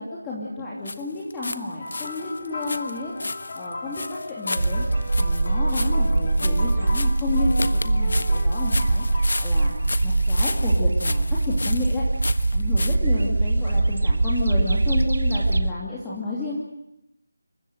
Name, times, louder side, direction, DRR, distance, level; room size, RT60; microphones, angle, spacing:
voice 1, 0.0-3.1 3.5-4.9 5.2-9.7 10.0-12.0 12.5-16.6, left 3 dB, 10° left, -6 dB, 2.8 m, -31 dB
sound 1, 0.9-1.6 1.9-13.0, left 2 dB, 60° left, 1.4 m, -33 dB
sound 2, 1.8-10.1 10.9-11.2 13.0-13.1, left 2 dB, 35° left, 3.9 m, -37 dB
sound 3, 4.6-15.7, right 2 dB, 65° right, 1.7 m, -22 dB
28.0 x 15.5 x 9.4 m, 0.87 s
figure-of-eight pair, 175°, 0 cm